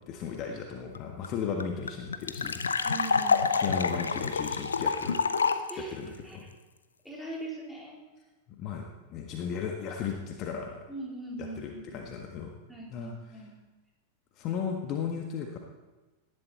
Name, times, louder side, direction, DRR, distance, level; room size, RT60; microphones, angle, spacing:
voice 1, 0.0-2.6 3.6-5.2 5.8-6.4 8.6-8.8 9.1-10.8 11.4-12.6 12.9-13.4 14.4-15.6, left 7 dB, 35° left, 2 dB, 1.4 m, -35 dB
sound 1, 0.9-1.0 1.2-1.3 1.6-5.7, left 5 dB, 70° left, 0.8 m, -27 dB
voice 2, 2.8-3.6 5.7-5.9 6.2-6.5 7.0-8.0 10.9-11.9 12.7-13.5, right 2 dB, ahead, -3 dB, 3.9 m, -41 dB
18.5 x 11.5 x 4.3 m, 1.2 s
figure-of-eight pair, 90°, 0 cm